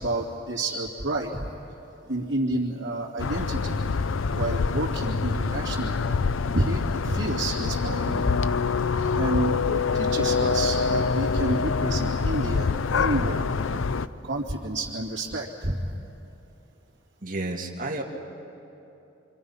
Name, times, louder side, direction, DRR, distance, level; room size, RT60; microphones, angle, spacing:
voice 1, 0.0-1.5 2.1-3.8 4.3-6.0 6.5-8.6 9.1-13.8 14.2-15.9, right 1 dB, 60° right, -8 dB, 2.6 m, -29 dB
sound 1, 3.2-14.1, left 5 dB, 70° left, 0.5 m, -25 dB
voice 2, 17.2-18.0, right 2 dB, 40° right, -1 dB, 2.1 m, -31 dB
26.0 x 26.0 x 5.6 m, 2.9 s
head